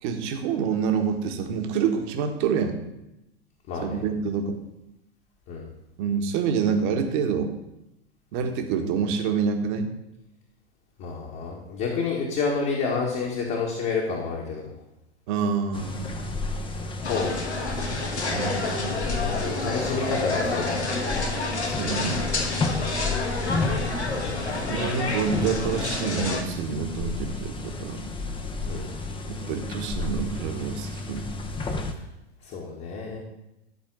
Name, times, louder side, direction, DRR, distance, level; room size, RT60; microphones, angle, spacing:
voice 1, 0.0-2.8 3.8-4.6 6.0-7.6 8.3-9.9 15.3-16.3 18.3-19.0 21.6-22.2 23.3-23.6 24.7-28.0 29.3-31.3, right 6 dB, 50° right, 4 dB, 1.6 m, -27 dB
voice 2, 3.7-4.1 5.5-5.7 11.0-14.7 17.0-17.9 19.4-21.1 28.6-28.9 32.4-33.2, left 4 dB, 40° left, -2 dB, 1.9 m, -29 dB
sound 1, 15.7-31.9, left 3 dB, 15° left, 0.9 m, -32 dB
sound 2, 17.0-26.4, left 3 dB, 85° left, 1.7 m, -29 dB
12.5 x 4.2 x 6.3 m, 0.92 s
hypercardioid pair, 100°, 32 cm